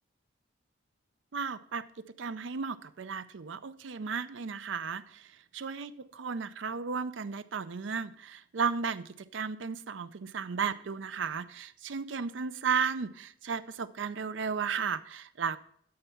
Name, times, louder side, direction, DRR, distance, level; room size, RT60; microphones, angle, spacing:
voice 1, 1.3-1.8 2.2-15.6, right 6 dB, 75° right, 13 dB, 0.5 m, -34 dB
12.0 x 4.5 x 5.6 m, 0.63 s
head